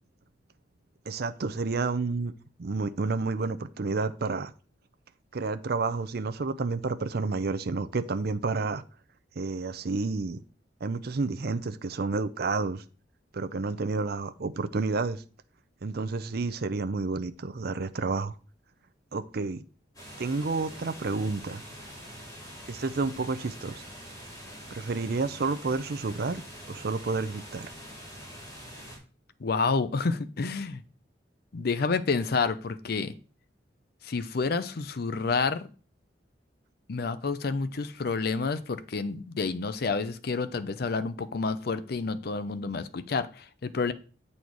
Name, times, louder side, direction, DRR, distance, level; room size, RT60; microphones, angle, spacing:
voice 1, 1.1-2.3 2.6-4.5 5.3-8.8 9.4-10.4 10.8-12.8 13.3-15.2 15.8-18.3 19.1-19.6 20.2-21.6 22.7-23.8 24.7-26.4 26.7-27.7, right 3 dB, 60° right, 0.6 m, -30 dB
sound 1, 19.9-29.0, equal, 20° left, 3.0 m, -45 dB
voice 2, 29.4-30.8 31.5-33.1 34.0-35.6 36.9-43.9, left 4 dB, 55° left, 0.5 m, -29 dB
8.7 x 4.2 x 4.6 m
head